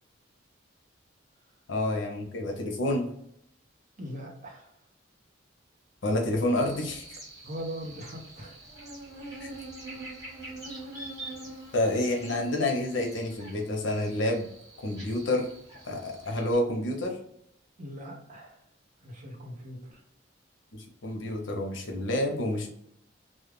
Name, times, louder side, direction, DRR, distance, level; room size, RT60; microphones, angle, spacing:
voice 1, 1.7-3.1 6.0-7.2 9.4-9.5 11.7-14.5 14.8-15.5 15.8-17.2 20.7-22.7, left 1 dB, 70° left, 2 dB, 0.7 m, -28 dB
voice 2, 4.0-4.7 7.4-8.7 17.8-18.6 19.0-20.0, equal, 40° right, -1 dB, 0.7 m, -40 dB
Buzz, 6.5-16.5, right 2 dB, 20° right, 1.2 m, -44 dB
2.3 x 2.1 x 3.1 m, 0.72 s
head